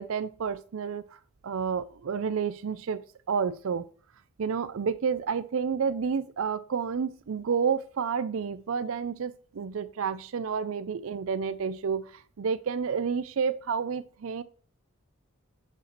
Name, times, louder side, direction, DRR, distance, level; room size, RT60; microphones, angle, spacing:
voice 1, 0.0-3.8 4.4-14.4, right 6 dB, 65° right, 0.4 m, -30 dB
7.5 x 5.1 x 3.1 m
head